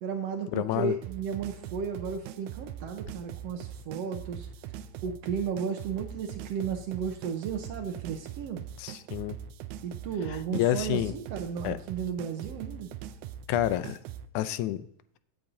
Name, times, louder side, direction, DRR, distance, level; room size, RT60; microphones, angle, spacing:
voice 1, 0.0-4.5 5.0-8.6 9.8-12.9, right 6 dB, 70° right, 5 dB, 1.7 m, -34 dB
voice 2, 0.5-0.9 8.8-9.4 10.3-11.1 11.6-11.8 13.5-14.0 14.3-14.9, left 13 dB, 85° left, 14 dB, 2.0 m, -29 dB
sound 1, 1.0-14.3, right 10 dB, 90° right, 2.1 m, -42 dB
15.5 x 8.7 x 2.7 m, 0.66 s
omnidirectional pair, 3.5 m